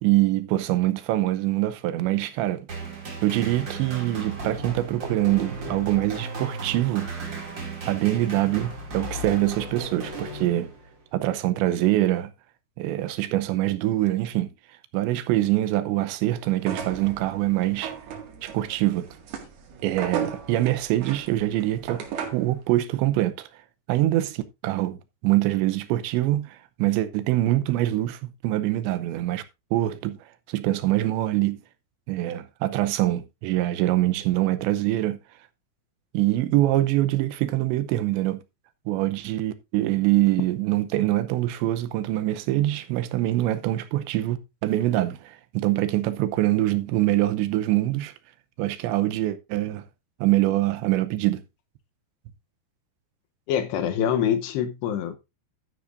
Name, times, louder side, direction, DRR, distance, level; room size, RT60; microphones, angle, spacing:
voice 1, 0.0-2.7 3.2-7.1 7.9-10.7 11.1-12.3 12.8-14.5 14.9-17.9 18.4-19.1 19.8-22.0 22.3-23.5 23.9-29.4 29.7-30.2 30.5-31.6 32.1-35.2 36.1-38.4 38.9-48.1 48.6-49.8 50.2-51.4, right 15 dB, 85° right, 3.1 m, -24 dB
sound 1, 2.7-11.0, right 3 dB, 30° right, 2.4 m, -35 dB
sound 2, 16.6-22.5, right 7 dB, 65° right, 3.7 m, -36 dB
voice 2, 53.5-55.2, left 9 dB, 75° left, 2.9 m, -25 dB
12.5 x 10.0 x 2.6 m
omnidirectional pair, 5.1 m